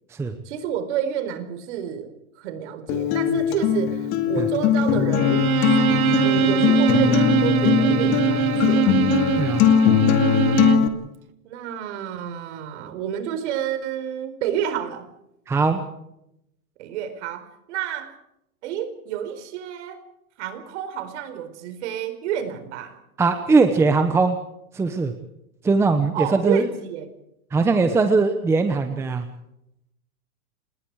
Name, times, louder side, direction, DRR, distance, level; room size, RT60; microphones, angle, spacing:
voice 1, 0.4-5.5 6.2-9.0 11.4-15.1 16.8-18.1 18.6-20.0 20.4-23.0 26.1-27.1, right 9 dB, 50° right, 10 dB, 4.6 m, -29 dB
Acoustic guitar, 2.9-10.9, left 9 dB, 30° left, 2.2 m, -20 dB
Bowed string instrument, 5.1-10.9, right 11 dB, 65° right, 2.2 m, -22 dB
voice 2, 9.4-10.0 15.5-15.8 23.2-24.4 24.7-25.1 25.6-26.7 27.5-29.2, right 4 dB, 5° right, 8 dB, 0.9 m, -20 dB
28.0 x 20.5 x 4.8 m, 0.81 s
supercardioid pair, 160°, 44 cm